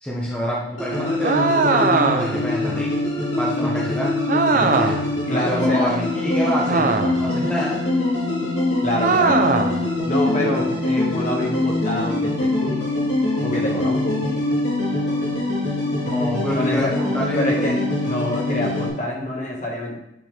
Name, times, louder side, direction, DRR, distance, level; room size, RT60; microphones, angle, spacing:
voice 1, 0.0-3.1 3.4-4.1 4.5-5.0 5.2-6.9 7.2-7.8 16.0-17.8, equal, 5° left, -5 dB, 1.0 m, -27 dB
sound 1, 0.8-18.9, left 2 dB, 80° left, 2.6 m, -23 dB
sound 2, 1.2-2.5 4.3-5.1 6.7-7.3 9.0-9.8, right 4 dB, 45° right, 0.5 m, -20 dB
voice 2, 5.3-5.9 8.8-9.7 10.0-12.8 13.4-14.2 16.5-16.9 17.3-20.0, left 1 dB, 40° left, -2 dB, 1.6 m, -26 dB
9.2 x 4.2 x 3.4 m, 0.84 s
head